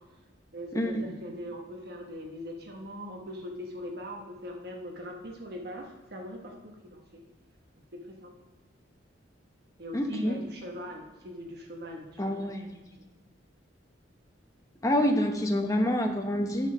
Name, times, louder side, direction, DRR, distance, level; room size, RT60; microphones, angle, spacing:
voice 1, 0.5-7.2 7.9-8.3 9.8-12.5 12.9-13.0, equal, 55° right, 2 dB, 1.2 m, -41 dB
voice 2, 9.9-10.4 12.2-12.7 14.8-16.7, left 1 dB, 15° left, 3 dB, 0.9 m, -27 dB
7.2 x 7.2 x 6.0 m, 1.2 s
head